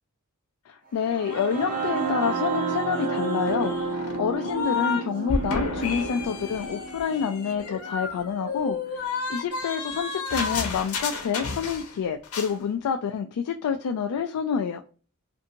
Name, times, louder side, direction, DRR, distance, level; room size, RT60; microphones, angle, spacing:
voice 1, 0.7-14.8, left 7 dB, 90° left, 0.3 m, -28 dB
sound 1, 1.0-8.9, right 5 dB, 40° right, 0.7 m, -31 dB
sound 2, 1.3-5.0 5.3-12.0 12.2-12.5, left 4 dB, 75° left, 0.7 m, -32 dB
2.6 x 2.6 x 2.5 m
head